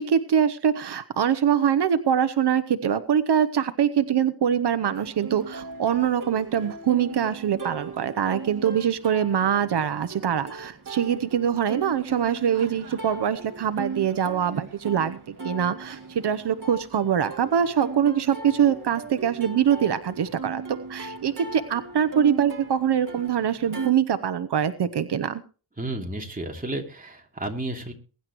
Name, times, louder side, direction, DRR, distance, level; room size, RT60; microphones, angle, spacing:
voice 1, 0.0-20.6 20.9-25.4, right 8 dB, 80° right, 12 dB, 0.9 m, -24 dB
Plucked string instrument, 4.9-23.9, right 4 dB, 50° right, 2.1 m, -38 dB
voice 2, 25.8-27.9, right 2 dB, 20° right, 1 dB, 2.8 m, -32 dB
22.0 x 10.5 x 3.1 m, 0.36 s
wide cardioid pair, 100°, 40 cm